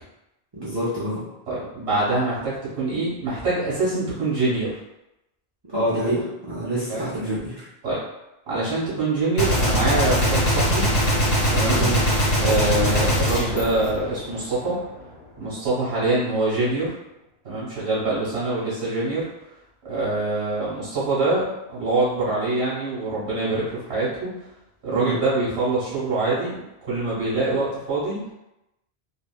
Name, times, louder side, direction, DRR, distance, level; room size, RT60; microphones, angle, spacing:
voice 1, 0.5-1.2 5.7-7.7 11.7-12.0 24.9-25.2, right 1 dB, 35° right, -8 dB, 0.4 m, -26 dB
voice 2, 1.5-4.7 6.9-7.2 7.8-8.0 8.5-10.9 11.5-11.9 12.4-14.8 15.4-16.9 17.4-19.2 19.8-24.3 24.8-26.6 26.9-28.2, right 2 dB, 75° right, -9 dB, 1.4 m, -24 dB
Gunshot gunfire, 9.4-14.6, equal, 85° left, 1.3 m, -21 dB
3.2 x 2.2 x 2.2 m, 0.90 s
omnidirectional pair, 1.1 m